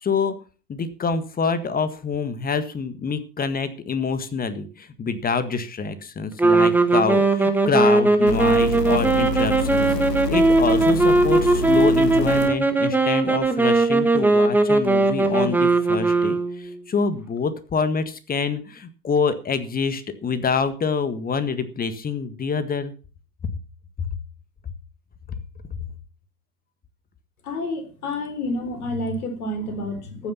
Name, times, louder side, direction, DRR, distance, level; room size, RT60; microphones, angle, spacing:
voice 1, 0.0-0.3 0.7-10.0 10.3-22.9 23.4-23.5, left 5 dB, 20° left, 12 dB, 1.7 m, -26 dB
sound 1, 6.4-16.8, right 2 dB, 5° right, 1.4 m, -19 dB
sound 2, 8.3-12.5 13.4-13.5, left 3 dB, 80° left, 1.7 m, -28 dB
voice 2, 27.4-30.3, left 1 dB, 65° left, 9 dB, 4.1 m, -29 dB
14.5 x 9.4 x 5.8 m, 0.36 s
figure-of-eight pair, 90°, 48 cm